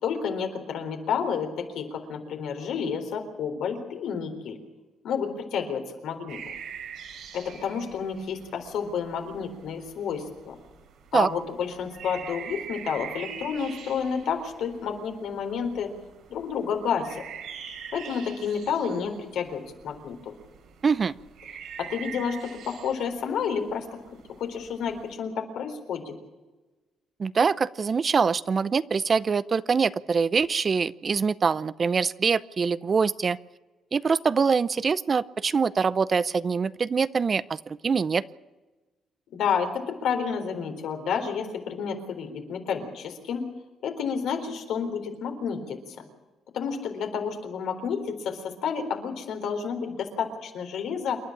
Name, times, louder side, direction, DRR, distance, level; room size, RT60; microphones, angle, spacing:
voice 1, 0.0-4.6 5.0-6.4 7.3-10.6 11.1-15.9 16.3-17.2 17.9-20.3 21.8-24.0 24.4-26.2 39.3-43.4 43.8-45.8 46.5-51.2, left 6 dB, 80° left, 5 dB, 3.8 m, -30 dB
sound 1, 6.3-25.1, right 7 dB, 80° right, 3.8 m, -44 dB
voice 2, 20.8-21.1 27.2-33.4 33.9-38.2, right 5 dB, 40° right, 17 dB, 0.6 m, -24 dB
28.0 x 11.5 x 8.7 m, 1.2 s
cardioid pair, 90°, 0 cm